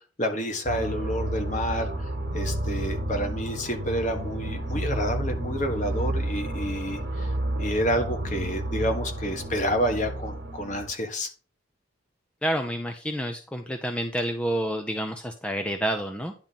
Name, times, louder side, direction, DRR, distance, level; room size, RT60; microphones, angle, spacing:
voice 1, 0.2-1.9 2.3-7.3 7.5-11.3, equal, 40° left, 5 dB, 1.4 m, -29 dB
sound 1, 0.6-10.9, right 1 dB, 55° right, 1.4 m, -31 dB
voice 2, 12.4-16.3, equal, 5° left, 5 dB, 0.5 m, -29 dB
10.5 x 3.7 x 5.7 m, 0.38 s
head